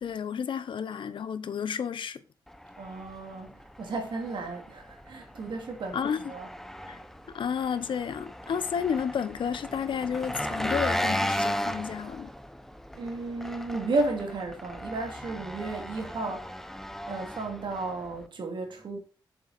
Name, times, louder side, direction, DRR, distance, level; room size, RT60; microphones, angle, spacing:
voice 1, 0.0-2.2 5.9-6.2 6.9-7.0 7.3-12.3, left 7 dB, 85° left, 0.8 m, -31 dB
Engine, 2.5-18.3, equal, 5° left, 0.7 m, -36 dB
voice 2, 2.8-6.5 12.9-16.8 17.1-19.0, right 3 dB, 75° right, 2.6 m, -33 dB
7.7 x 7.1 x 4.1 m
wide cardioid pair, 100°, 8 cm